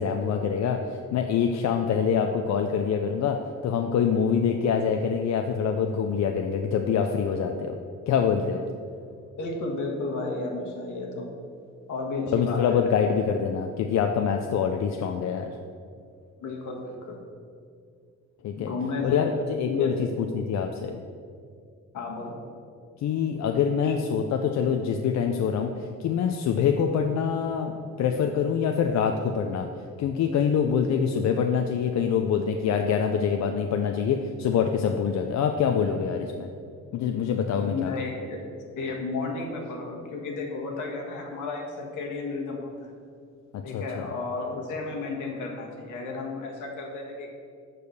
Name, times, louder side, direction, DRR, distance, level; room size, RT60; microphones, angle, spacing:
voice 1, 0.0-7.8 8.1-8.6 12.3-15.5 18.4-18.7 19.0-21.0 23.0-29.7 30.0-36.5 36.9-37.9 43.5-44.0, left 7 dB, 65° left, 4 dB, 0.6 m, -25 dB
voice 2, 9.4-11.3 11.9-13.0 16.4-17.2 18.6-19.3 19.6-19.9 21.9-22.4 23.8-23.9 37.6-38.4 38.7-42.7 43.6-47.3, left 3 dB, 80° left, 0 dB, 1.6 m, -32 dB
6.7 x 5.1 x 6.7 m, 2.3 s
cardioid pair, 90°, 30 cm